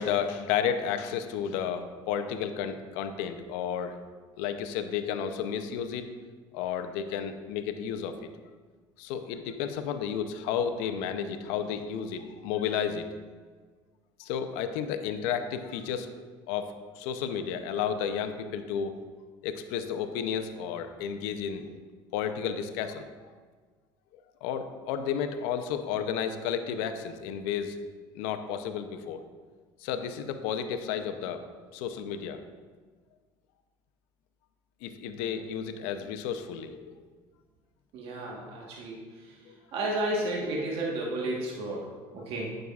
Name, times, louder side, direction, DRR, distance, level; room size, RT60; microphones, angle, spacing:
voice 1, 0.0-4.0 4.4-6.1 6.5-8.2 9.0-13.1 14.2-16.1 16.5-16.6 17.0-18.9 19.4-21.7 22.1-23.1 24.4-27.8 28.1-29.2 29.8-31.4 31.7-32.4 34.8-36.9 39.5-39.6, left 8 dB, 85° left, 9 dB, 0.6 m, -32 dB
voice 2, 37.9-39.4 39.7-42.5, right 1 dB, 65° right, -3 dB, 1.3 m, -32 dB
9.3 x 6.2 x 2.4 m, 1.5 s
supercardioid pair, 90°, 11 cm